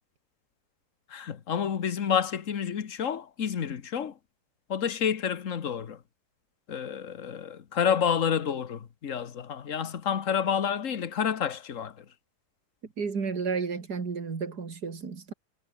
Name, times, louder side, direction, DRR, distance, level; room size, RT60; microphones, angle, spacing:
voice 1, 1.1-4.2 4.7-6.0 6.7-12.0, left 8 dB, 55° left, 1.6 m, -29 dB
voice 2, 13.0-15.3, right 5 dB, 80° right, 3.1 m, -32 dB
omnidirectional pair, 1.7 m